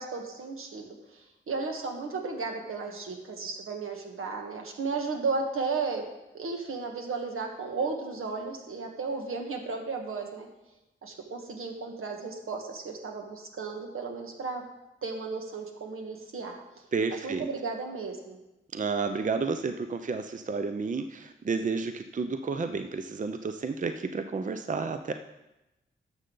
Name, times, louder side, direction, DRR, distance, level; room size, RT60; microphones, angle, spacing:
voice 1, 0.0-6.0 6.3-10.5 11.0-14.6 15.0-16.5 17.1-18.4, right 4 dB, 80° right, 2 dB, 1.5 m, -34 dB
voice 2, 16.9-17.5 18.7-25.1, right 4 dB, 40° right, 8 dB, 0.5 m, -31 dB
12.0 x 6.7 x 3.9 m, 0.97 s
cardioid pair, 65°, 21 cm